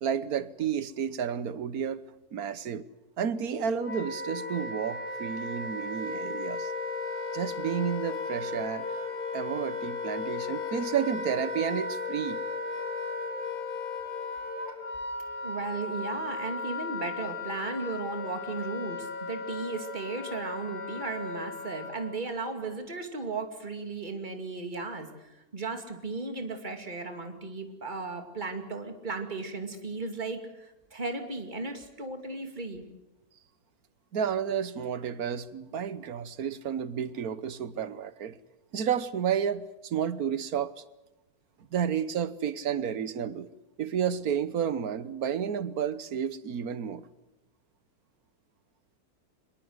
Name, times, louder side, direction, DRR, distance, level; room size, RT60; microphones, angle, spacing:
voice 1, 0.0-2.0 2.3-2.9 3.2-6.7 7.3-8.9 9.3-12.4 34.1-38.4 38.7-40.8 41.7-43.5 43.8-47.1, right 8 dB, 70° right, 1.5 m, -31 dB
Wind instrument woodwind instrument, 3.3-22.1, left 3 dB, 90° left, 4.4 m, -36 dB
voice 2, 15.4-32.8, right 3 dB, 30° right, 2.7 m, -36 dB
24.5 x 21.0 x 8.0 m
omnidirectional pair, 1.6 m